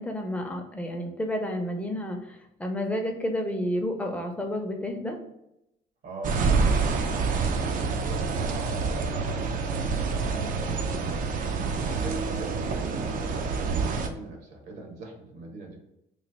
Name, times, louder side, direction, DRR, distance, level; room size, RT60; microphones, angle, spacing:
voice 1, 0.0-5.2, left 1 dB, 10° left, 3 dB, 0.6 m, -30 dB
voice 2, 6.0-7.3 7.8-11.3 11.8-15.8, right 2 dB, 75° right, 2 dB, 1.2 m, -42 dB
sound 1, 6.2-14.1, right 4 dB, 55° right, 0.5 m, -27 dB
3.2 x 2.5 x 4.0 m, 0.84 s
cardioid pair, 110°, 17 cm